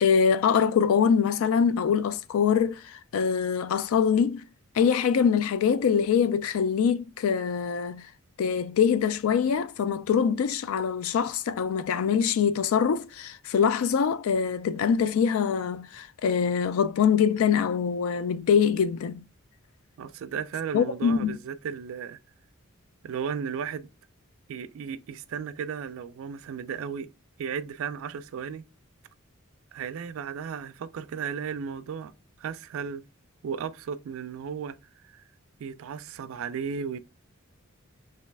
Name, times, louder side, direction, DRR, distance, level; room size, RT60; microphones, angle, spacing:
voice 1, 0.0-4.4 4.7-8.1 8.4-19.2 20.7-21.4, left 7 dB, 70° left, 0.3 m, -24 dB
voice 2, 20.0-22.2 23.0-23.9 24.5-27.1 27.4-28.6 29.7-32.1 32.4-33.0 33.4-34.8 35.0-35.2 35.6-37.0, right 7 dB, 65° right, 0.3 m, -35 dB
3.1 x 2.7 x 3.2 m
head